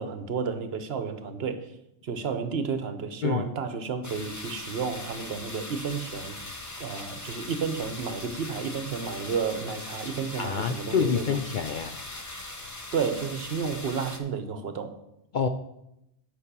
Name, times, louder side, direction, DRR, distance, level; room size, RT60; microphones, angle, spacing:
voice 1, 0.0-1.7 2.0-6.4 6.8-11.2 12.9-14.9, right 6 dB, 65° right, 9 dB, 1.0 m, -31 dB
sound 1, 4.0-14.2, left 2 dB, 20° left, 0.7 m, -40 dB
voice 2, 10.4-12.0 15.3-15.5, left 6 dB, 60° left, 7 dB, 0.5 m, -27 dB
8.4 x 5.4 x 6.7 m, 0.84 s
omnidirectional pair, 1.2 m